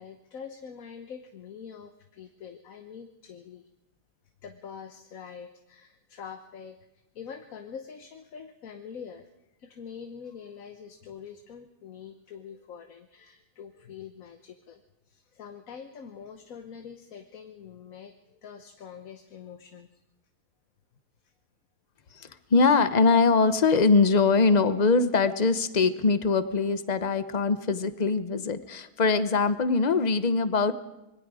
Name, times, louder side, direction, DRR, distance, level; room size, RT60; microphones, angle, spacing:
voice 1, 0.0-3.7 4.4-6.8 7.1-9.3 9.6-19.9 21.2-21.3, left 7 dB, 60° left, 6 dB, 1.3 m, -44 dB
voice 2, 22.1-30.7, left 4 dB, 35° left, 12 dB, 0.8 m, -22 dB
26.0 x 22.0 x 4.9 m, 0.94 s
omnidirectional pair, 1.7 m